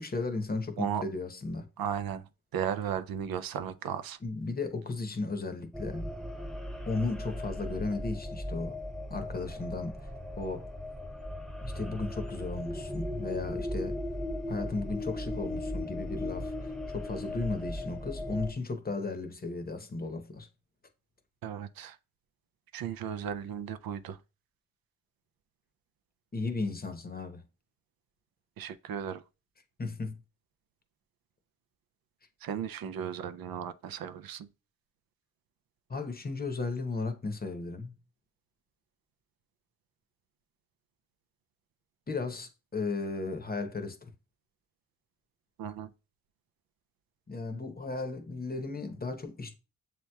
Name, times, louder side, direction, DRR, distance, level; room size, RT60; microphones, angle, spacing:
voice 1, 0.0-1.7 4.2-6.1 6.9-8.8 9.1-10.1 10.4-10.7 11.6-14.0 14.5-20.5 26.3-27.4 29.8-30.2 35.9-37.9 42.1-44.1 47.3-49.5, left 3 dB, 25° left, 0.8 m, -35 dB
voice 2, 1.8-2.2 2.5-4.2 21.4-22.0 22.7-24.2 28.6-29.2 32.4-34.5 45.6-45.9, right 8 dB, 70° right, 0.5 m, -35 dB
sound 1, 5.7-18.5, left 1 dB, ahead, 0.5 m, -37 dB
7.0 x 2.9 x 2.2 m
cardioid pair, 70°, 36 cm